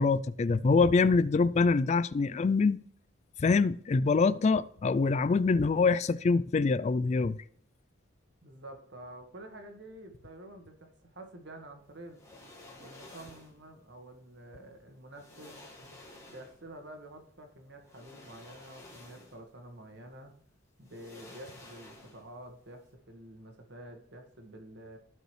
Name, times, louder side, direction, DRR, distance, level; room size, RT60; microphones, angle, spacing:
voice 1, 0.0-2.8 3.4-7.4, left 4 dB, 35° left, 0.3 m, -25 dB
voice 2, 8.4-12.2 12.8-15.6 16.3-20.3 20.8-25.0, right 1 dB, 60° right, 1.8 m, -49 dB
sound 1, 12.1-13.6 14.7-14.8 15.1-16.7 17.8-19.5 19.9-20.0 20.8-22.4 22.7-22.9, left 2 dB, 15° left, 2.1 m, -52 dB
16.0 x 5.3 x 3.3 m
head